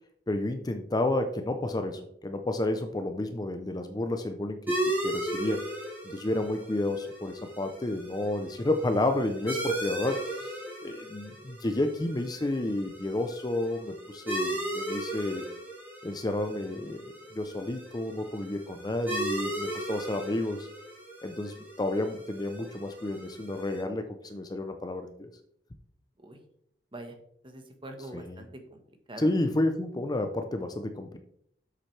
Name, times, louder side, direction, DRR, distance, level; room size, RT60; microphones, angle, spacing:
voice 1, 0.3-5.6 6.0-10.6 10.8-15.5 16.0-20.7 21.2-25.3 28.1-28.4 29.2-31.2, left 1 dB, 25° left, 8 dB, 0.5 m, -31 dB
sound 1, 4.7-23.8, right 1 dB, 10° right, 3.3 m, -36 dB
voice 2, 27.4-28.8 29.1-29.3, right 1 dB, 30° right, 6 dB, 1.2 m, -44 dB
8.8 x 7.6 x 3.2 m, 0.70 s
head